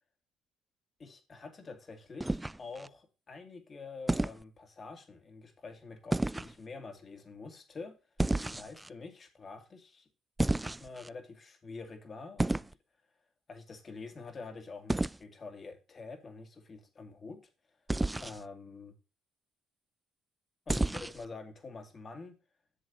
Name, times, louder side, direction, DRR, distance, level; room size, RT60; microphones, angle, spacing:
voice 1, 1.0-7.9 8.5-10.1 10.6-12.7 13.5-17.4 18.2-18.9 20.7-22.3, left 4 dB, 35° left, 2.5 m, -47 dB
sound 1, 2.2-2.9 4.1-4.4 6.1-6.5 8.2-8.9 10.4-11.1 12.4-12.7 14.9-15.2 17.9-18.4 20.7-21.3, right 2 dB, 10° right, 0.3 m, -31 dB
11.0 x 7.3 x 2.8 m
supercardioid pair, 85°, 0 cm